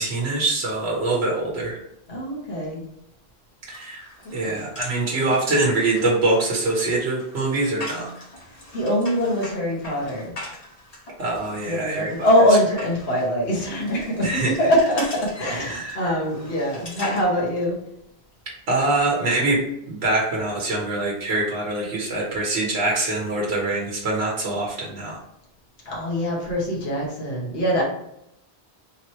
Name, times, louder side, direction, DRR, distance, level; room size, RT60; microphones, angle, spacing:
voice 1, 0.0-1.8 3.7-8.1 11.2-12.3 14.2-14.5 15.6-16.0 18.7-19.6 19.9-25.2, right 2 dB, 80° right, -2 dB, 1.2 m, -24 dB
voice 2, 2.1-2.8 4.2-4.6 8.4-10.3 11.7-17.7 25.8-27.8, equal, 70° left, -4 dB, 1.3 m, -23 dB
sound 1, 3.7-17.2, left 1 dB, 40° left, 1.2 m, -41 dB
3.7 x 3.0 x 4.2 m, 0.78 s
omnidirectional pair, 1.1 m